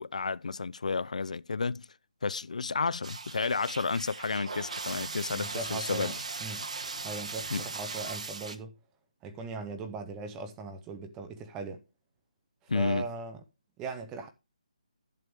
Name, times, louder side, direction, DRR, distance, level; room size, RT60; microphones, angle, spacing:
voice 1, 0.0-1.9 2.2-6.1 7.5-7.7 12.7-13.1, left 4 dB, 65° left, 0.5 m, -31 dB
sound 1, 3.0-8.6, right 4 dB, 60° right, 1.2 m, -38 dB
voice 2, 5.3-6.1 6.4-6.6 7.0-8.7 9.2-11.8 12.7-13.4 13.8-14.3, right 4 dB, 10° right, 0.6 m, -39 dB
11.0 x 7.7 x 3.5 m
hypercardioid pair, 175°, 4 cm